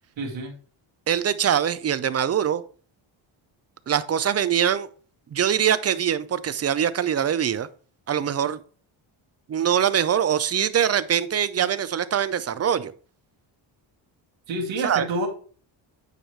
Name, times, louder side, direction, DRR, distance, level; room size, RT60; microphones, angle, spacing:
voice 1, 0.2-0.5 14.5-15.3, right 2 dB, 70° right, 1 dB, 2.1 m, -28 dB
voice 2, 1.1-2.6 3.9-4.9 5.3-7.7 8.1-8.6 9.5-12.9 14.8-15.1, right 9 dB, 35° right, 15 dB, 0.5 m, -23 dB
9.0 x 4.8 x 3.2 m, 0.42 s
cardioid pair, 115°, 47 cm